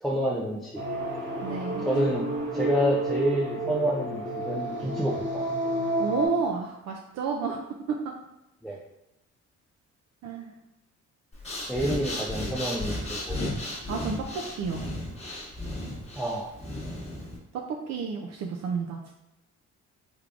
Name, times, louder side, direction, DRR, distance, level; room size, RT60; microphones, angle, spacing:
voice 1, 0.0-0.8 1.8-2.3 2.5-5.4 8.6-8.8 11.7-13.5 16.2-16.5, equal, ahead, -3 dB, 0.3 m, -28 dB
sound 1, 0.7-6.3, right 1 dB, 80° right, 1.2 m, -30 dB
voice 2, 1.4-1.9 6.0-7.6 7.9-8.1 10.2-10.5 13.9-14.9 17.5-19.1, right 5 dB, 60° right, 1 dB, 0.5 m, -31 dB
Breathing, 11.3-17.4, left 1 dB, 20° left, 1.1 m, -34 dB
3.5 x 3.3 x 2.4 m, 0.91 s
cardioid pair, 90°, 30 cm